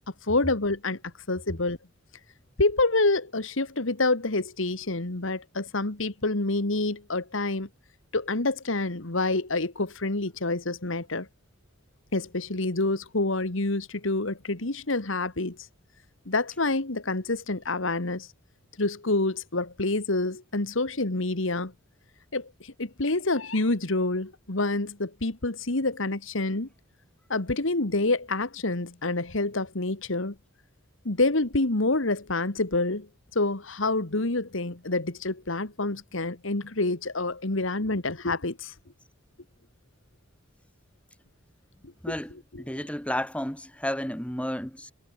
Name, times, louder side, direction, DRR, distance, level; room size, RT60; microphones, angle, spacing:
voice 1, 0.3-1.0 1.3-1.8 2.6-7.7 8.1-11.3 12.1-15.6 16.3-18.3 18.8-21.7 22.3-26.7 27.3-30.4 31.1-33.1 33.4-38.7 41.8-41.9 42.5-42.8, left 2 dB, 70° left, 1.9 m, -27 dB
voice 2, 42.0-44.9, left 1 dB, 5° left, 2.9 m, -32 dB
head